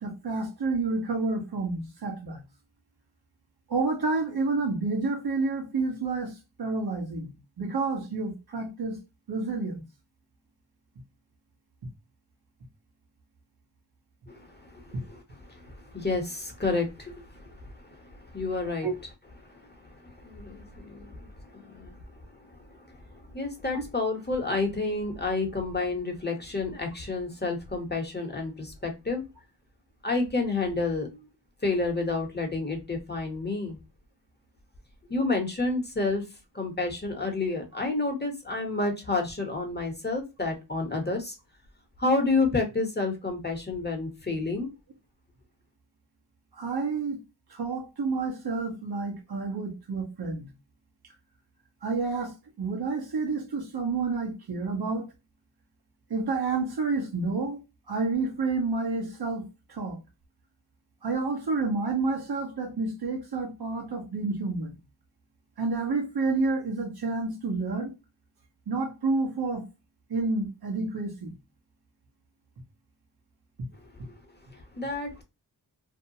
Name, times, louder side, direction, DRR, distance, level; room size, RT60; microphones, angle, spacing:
voice 1, 0.0-2.4 3.7-9.0 9.3-9.8 18.8-18.9 23.7-23.8 46.6-47.2 47.5-50.5 51.8-55.1 56.1-57.6 57.9-60.0 61.0-64.7 65.6-67.9 68.7-69.6 70.1-71.3, right 3 dB, 60° right, 1.1 m, -29 dB
voice 2, 14.3-15.2 15.4-18.9 19.5-22.0 22.4-29.2 30.0-31.2 31.6-33.8 35.1-36.2 36.5-41.3 42.0-44.7 74.0-74.2 74.5-75.2, left 3 dB, 25° left, 0.9 m, -30 dB
2.7 x 2.2 x 2.7 m
cardioid pair, 55°, 43 cm